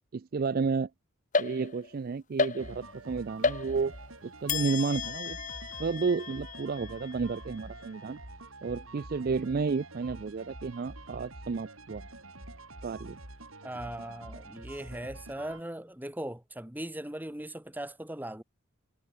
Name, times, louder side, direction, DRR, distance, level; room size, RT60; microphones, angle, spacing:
voice 1, 0.1-0.9 1.4-3.9 4.2-5.4 5.8-8.2 8.6-12.0 12.8-13.2, right 4 dB, 45° right, 0.4 m, -31 dB
sound 1, 1.3-2.0 2.4-3.0 3.4-4.1 4.5-7.9, left 4 dB, 40° left, 1.3 m, -33 dB
sound 2, 2.6-15.6, right 2 dB, 80° right, 6.9 m, -47 dB
voice 2, 13.6-18.4, right 1 dB, 10° right, 1.5 m, -39 dB
head